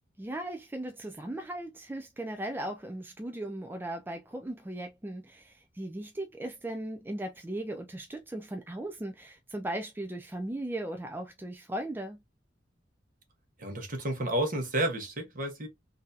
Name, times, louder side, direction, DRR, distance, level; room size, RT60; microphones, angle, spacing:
voice 1, 0.2-12.2, right 1 dB, 10° right, 0.4 m, -37 dB
voice 2, 13.6-15.7, right 1 dB, 50° right, 1.3 m, -31 dB
4.0 x 2.7 x 2.6 m
head